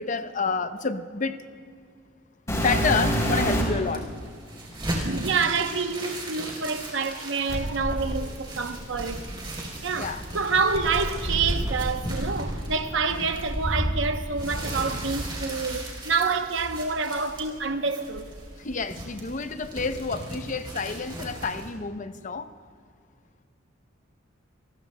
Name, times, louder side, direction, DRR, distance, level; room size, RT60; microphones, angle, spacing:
voice 1, 0.0-1.5 2.5-4.1 10.0-10.2 18.6-22.5, left 4 dB, 40° left, 0.6 m, -29 dB
sound 1, 2.5-3.9 4.7-4.8 7.5-9.6 10.7-14.5 14.7-15.8 16.6-16.7 17.3-17.4 18.1-19.2 19.5-20.0 21.3-21.4, equal, 15° left, 3.5 m, -29 dB
sound 2, 3.8-21.7, right 1 dB, 25° right, 3.6 m, -37 dB
voice 2, 5.0-9.2 9.8-18.3, right 4 dB, 70° right, 0.9 m, -27 dB
28.0 x 20.5 x 2.2 m
head